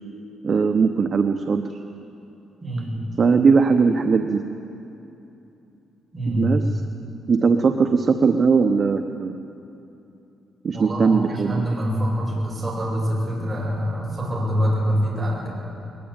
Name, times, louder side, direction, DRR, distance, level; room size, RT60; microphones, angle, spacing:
voice 1, 0.4-1.6 3.2-4.4 6.3-6.6 7.3-9.3 10.6-11.6, right 5 dB, 35° right, 5 dB, 0.9 m, -19 dB
voice 2, 2.6-3.0 6.1-6.5 10.7-15.5, equal, 15° right, -5 dB, 7.7 m, -25 dB
21.5 x 20.5 x 9.0 m, 2.9 s
cardioid pair, 150°, 0 cm